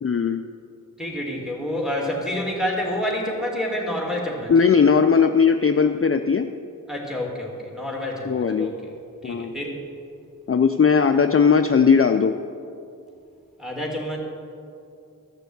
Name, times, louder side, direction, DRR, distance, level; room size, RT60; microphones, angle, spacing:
voice 1, 0.0-0.4 4.5-6.5 8.3-8.7 9.2-9.5 10.5-12.3, left 6 dB, 40° left, 8 dB, 0.5 m, -18 dB
voice 2, 1.0-4.5 6.9-8.9 9.2-9.8 13.6-14.2, left 1 dB, ahead, -1 dB, 2.9 m, -28 dB
13.5 x 6.8 x 8.1 m, 2.5 s
wide cardioid pair, 75°, 34 cm